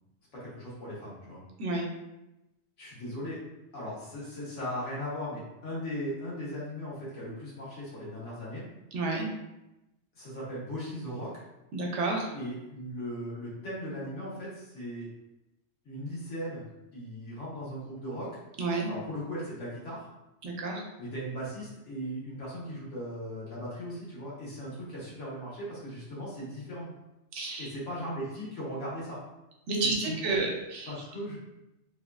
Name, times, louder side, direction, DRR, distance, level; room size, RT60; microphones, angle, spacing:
voice 1, 0.3-1.4 2.8-3.4 3.7-8.6 10.1-11.5 12.3-15.1 15.8-16.7 16.9-18.4 18.9-20.1 21.0-26.9 27.6-29.2 29.8-30.4 30.9-31.4, equal, 85° left, -7 dB, 1.4 m, -38 dB
voice 2, 8.9-9.3 11.7-12.3 18.6-18.9 20.4-20.8 27.3-27.7 29.7-30.9, right 3 dB, 85° right, 1 dB, 0.9 m, -30 dB
3.0 x 2.2 x 2.3 m, 0.94 s
omnidirectional pair, 1.2 m